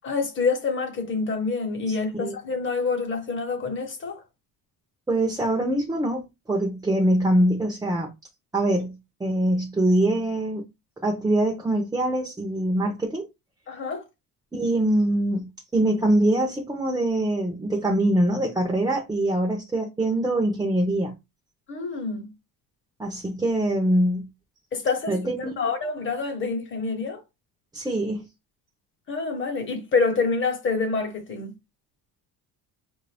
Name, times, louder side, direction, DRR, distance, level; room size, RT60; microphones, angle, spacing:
voice 1, 0.0-4.2 13.7-14.0 21.7-22.3 24.7-27.2 29.1-31.5, left 4 dB, 30° left, 1.2 m, -27 dB
voice 2, 1.9-2.3 5.1-8.1 8.5-10.6 11.0-13.3 14.5-21.1 23.0-24.3 25.1-25.5 27.7-28.2, right 1 dB, 10° right, 0.7 m, -24 dB
5.0 x 2.6 x 3.4 m
cardioid pair, 150°, 37 cm